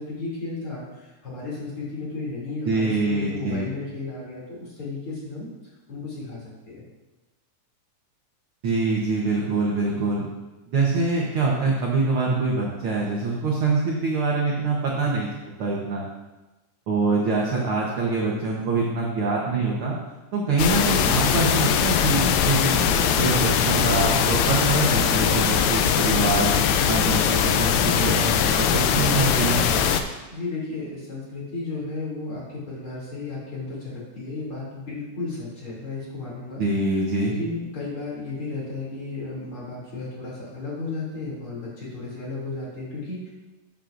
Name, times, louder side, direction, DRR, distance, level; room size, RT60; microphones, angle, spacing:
voice 1, 0.0-5.5 5.9-6.8 30.3-36.6 37.2-43.3, left 3 dB, 40° left, -6 dB, 3.4 m, -34 dB
voice 2, 2.7-3.7 8.6-10.3 10.7-16.1 16.9-20.0 20.3-29.9 36.6-37.4, right 3 dB, 65° right, -3 dB, 1.3 m, -25 dB
sound 1, 20.6-30.0, left 8 dB, 80° left, 2.2 m, -21 dB
13.0 x 7.8 x 2.6 m, 1.1 s
omnidirectional pair, 4.0 m